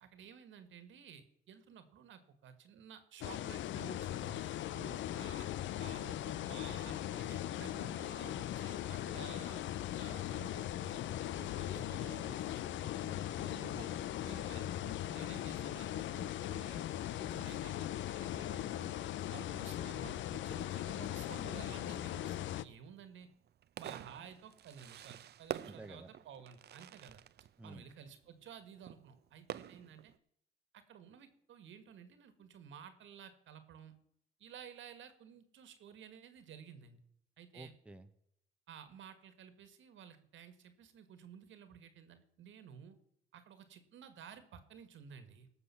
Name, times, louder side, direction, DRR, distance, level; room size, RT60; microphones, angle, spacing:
voice 1, 0.0-4.6 5.1-5.5 5.8-9.7 10.0-11.1 11.5-12.9 13.4-13.9 14.2-16.8 17.2-18.9 19.3-23.3 23.8-27.2 27.6-30.1 30.7-33.9 34.4-37.0 37.4-37.7 38.7-43.0 43.3-45.5, right 7 dB, 75° right, 10 dB, 1.6 m, -54 dB
sound 1, 3.2-22.6, left 12 dB, 70° left, 0.5 m, -39 dB
voice 2, 4.7-5.1 11.4-11.9 13.0-13.4 25.6-26.1 27.6-27.9 37.5-38.1, right 2 dB, 5° right, 7 dB, 0.9 m, -52 dB
sound 2, 5.4-22.3, left 7 dB, 45° left, 3.1 m, -64 dB
Fireworks, 15.1-30.2, right 11 dB, 55° right, 0.6 m, -51 dB
18.0 x 6.7 x 5.7 m, 0.73 s
cardioid pair, 90°, 20 cm